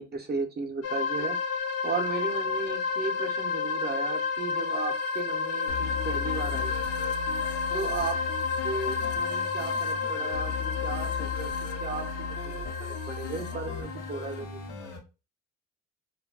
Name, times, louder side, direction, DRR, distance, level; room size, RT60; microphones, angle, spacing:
voice 1, 0.0-1.4 1.8-6.7 7.7-8.2 8.6-11.5 11.8-12.6 13.1-14.7, right 4 dB, 35° right, 3 dB, 0.6 m, -35 dB
sound 1, 0.8-14.4, left 5 dB, 55° left, 0.5 m, -31 dB
sound 2, 5.7-15.0, left 5 dB, 75° left, 0.9 m, -37 dB
2.3 x 2.2 x 3.3 m, 0.29 s
cardioid pair, 90°, 30 cm